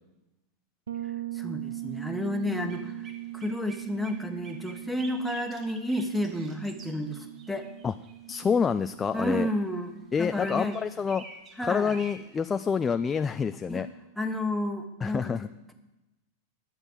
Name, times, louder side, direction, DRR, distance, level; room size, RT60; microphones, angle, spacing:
Bass guitar, 0.9-10.5, right 15 dB, 70° right, 0.7 m, -41 dB
voice 1, 1.3-7.7 9.1-10.8 11.6-12.0 13.7-13.8 14.2-15.7, left 1 dB, ahead, 6 dB, 1.2 m, -31 dB
sound 1, 1.9-8.6 9.5-12.4, right 4 dB, 30° right, 1.8 m, -49 dB
voice 2, 8.3-9.5 10.1-11.2 11.6-13.9 15.0-15.5, left 6 dB, 20° left, 11 dB, 0.3 m, -27 dB
11.0 x 7.8 x 7.4 m, 1.0 s
figure-of-eight pair, 90°, 0 cm